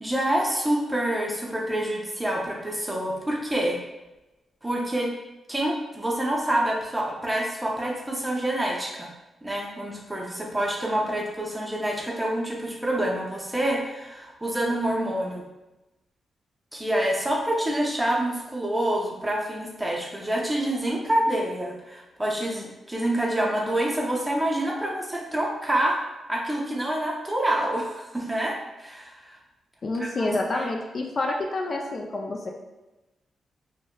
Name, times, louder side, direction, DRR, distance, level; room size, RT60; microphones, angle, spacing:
voice 1, 0.0-3.8 4.6-5.1 5.5-9.1 9.4-15.4 16.7-26.0 26.3-29.4 30.0-30.3 30.5-30.7, right 1 dB, 15° right, -2 dB, 0.6 m, -27 dB
voice 2, 29.8-32.5, left 2 dB, 50° left, 0 dB, 0.3 m, -28 dB
2.6 x 2.1 x 2.2 m, 1.0 s
cardioid pair, 65°, 0 cm